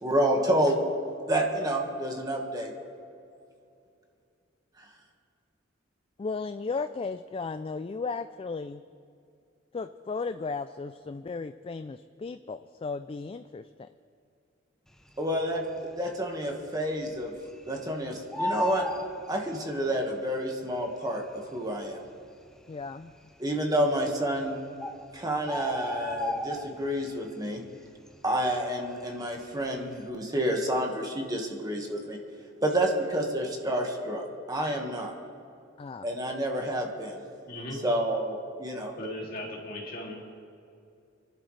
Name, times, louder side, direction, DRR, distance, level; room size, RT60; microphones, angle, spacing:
voice 1, 0.0-0.8 1.3-2.7 15.2-17.3 17.7-18.9 19.3-22.0 23.4-24.6 25.1-27.6 28.2-32.2 32.6-35.1 36.0-37.2 37.8-38.9, right 1 dB, 20° right, 1 dB, 1.6 m, -29 dB
voice 2, 6.2-8.8 9.7-13.7 22.7-23.1 35.8-36.1, left 4 dB, 30° left, 10 dB, 0.3 m, -35 dB
Bird, 15.4-16.0 16.3-16.4 16.7-17.9 18.1-20.0 20.8-20.9 21.6-21.7 21.8-22.0 22.6-23.1 24.0-24.1 24.5-24.6 24.8-27.1 27.4-27.8 28.1-29.4 29.8-30.0, left 1 dB, 5° left, 0.8 m, -34 dB
voice 3, 37.5-37.8 39.0-40.3, left 1 dB, 50° left, -2 dB, 2.7 m, -38 dB
27.5 x 11.5 x 3.3 m, 2.5 s
head